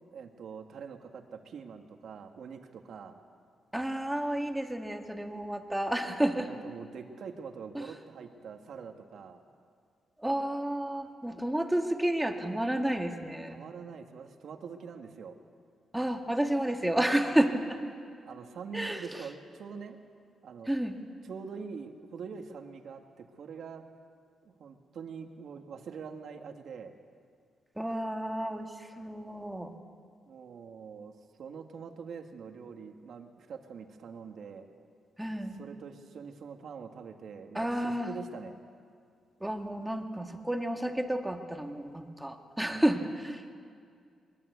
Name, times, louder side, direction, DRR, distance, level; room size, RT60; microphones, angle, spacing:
voice 1, 0.1-3.2 6.5-9.4 13.5-15.4 18.2-20.0 20.4-20.7 21.2-23.8 24.4-26.9 30.3-31.1 31.4-34.7 35.6-38.5 42.7-42.8, right 6 dB, 65° right, 4 dB, 2.1 m, -44 dB
voice 2, 3.7-6.5 7.7-7.9 10.2-13.6 15.9-17.8 18.7-19.2 20.7-21.0 27.8-29.7 35.2-35.6 37.5-38.1 39.4-43.4, right 1 dB, 5° right, 4 dB, 2.0 m, -31 dB
22.0 x 21.0 x 8.3 m, 2.2 s
cardioid pair, 100°, 0 cm